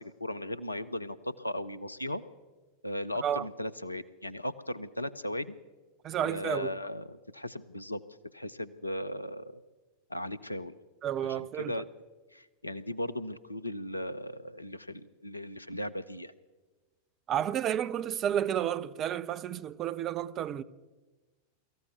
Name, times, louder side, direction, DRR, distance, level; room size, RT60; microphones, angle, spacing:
voice 1, 0.0-2.2 2.8-5.5 6.2-8.0 8.3-9.6 10.1-10.8 11.2-11.9 12.3-16.3, left 1 dB, 85° left, 0.8 m, -37 dB
voice 2, 6.0-6.7 11.0-11.7 17.3-20.6, right 10 dB, 30° right, 0.8 m, -31 dB
23.5 x 14.5 x 8.0 m
figure-of-eight pair, 90°, 0 cm